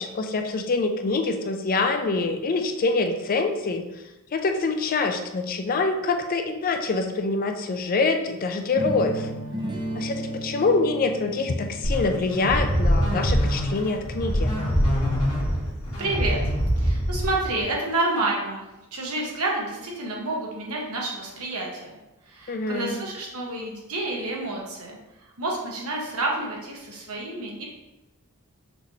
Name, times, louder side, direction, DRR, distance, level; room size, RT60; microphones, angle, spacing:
voice 1, 0.0-3.8 4.3-9.3 9.9-14.5 22.5-22.9, left 3 dB, 40° left, 5 dB, 0.4 m, -25 dB
sound 1, 8.8-14.7, right 1 dB, 20° right, 0.6 m, -35 dB
sound 2, 11.8-17.6, equal, 65° left, 1.6 m, -24 dB
voice 2, 16.0-16.4 16.8-21.9 22.3-27.7, right 2 dB, 75° right, -2 dB, 1.1 m, -29 dB
5.9 x 3.1 x 2.7 m, 0.97 s
head